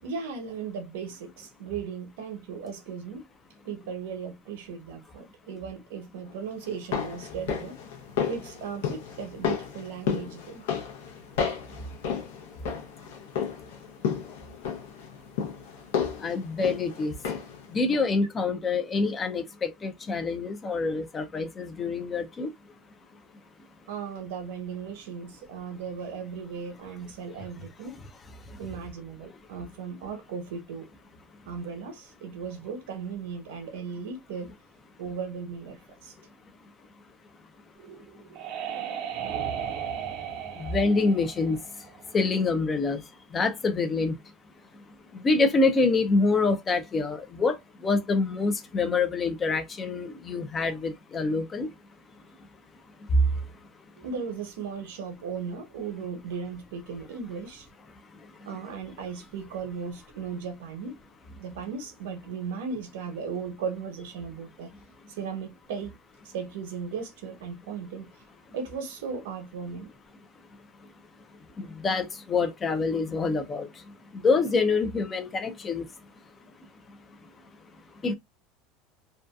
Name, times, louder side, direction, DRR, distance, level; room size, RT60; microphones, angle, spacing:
voice 1, 0.0-3.3 3.6-7.8 8.2-10.6 23.9-28.0 28.6-30.9 31.5-34.5 35.0-36.1 54.0-57.7 58.4-61.0 61.4-64.7 65.1-66.0 66.2-68.1 68.5-69.9, right 6 dB, 90° right, 0.9 m, -36 dB
sound 1, 6.6-17.7 17.9-18.0, left 7 dB, 90° left, 0.6 m, -33 dB
voice 2, 16.2-17.1 17.7-22.5 40.6-41.6 42.1-43.0 43.3-44.2 45.1-47.6 47.8-51.7 53.1-53.3 71.6-73.7 74.2-75.9 78.0-78.1, left 3 dB, 20° left, 0.4 m, -26 dB
sound 2, 37.8-42.4, right 8 dB, 45° right, 0.5 m, -35 dB
2.6 x 2.2 x 2.2 m
supercardioid pair, 165°, 0 cm